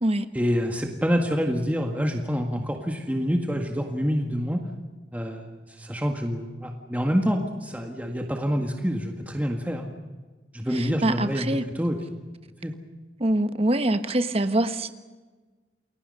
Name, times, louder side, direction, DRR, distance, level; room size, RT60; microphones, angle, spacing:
voice 1, 0.3-4.6 5.1-9.9 10.5-12.3 12.6-12.7, equal, 10° right, 1.8 m, -27 dB
voice 2, 10.8-11.6 13.2-14.9, right 1 dB, 35° right, 1.3 m, -24 dB
29.5 x 21.5 x 5.6 m
head